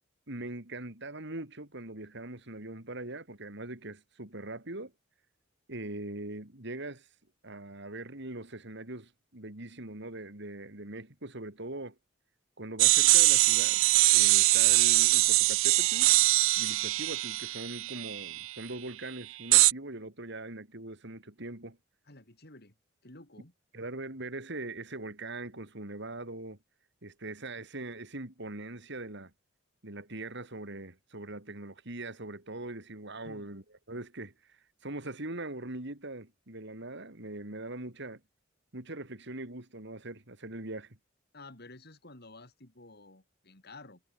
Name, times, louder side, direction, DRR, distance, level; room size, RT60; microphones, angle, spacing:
voice 1, 0.3-4.9 5.7-7.1 7.4-12.0 12.6-13.8 14.1-16.2 16.6-21.8 23.7-26.6 27.0-29.3 29.8-38.2 38.7-41.0, right 2 dB, 60° right, 3.6 m, -41 dB
sound 1, 12.8-18.5 19.5-19.7, right 18 dB, 85° right, 0.5 m, -23 dB
voice 2, 22.1-22.7 23.0-23.5 33.2-33.5 41.3-44.0, left 2 dB, 55° left, 5.2 m, -51 dB
head